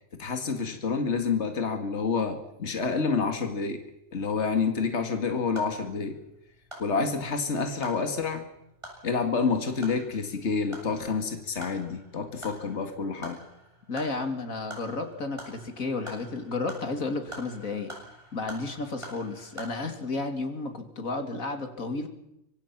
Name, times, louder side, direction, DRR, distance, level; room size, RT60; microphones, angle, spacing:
voice 1, 0.1-3.8 4.1-6.2 6.8-8.5 9.0-13.4, left 5 dB, 55° left, 6 dB, 2.4 m, -28 dB
sound 1, 5.5-19.7, right 1 dB, 20° right, 8.2 m, -47 dB
voice 2, 13.9-17.9 18.3-22.1, left 3 dB, 90° left, 7 dB, 3.2 m, -32 dB
25.0 x 25.0 x 6.0 m, 0.84 s
omnidirectional pair, 1.4 m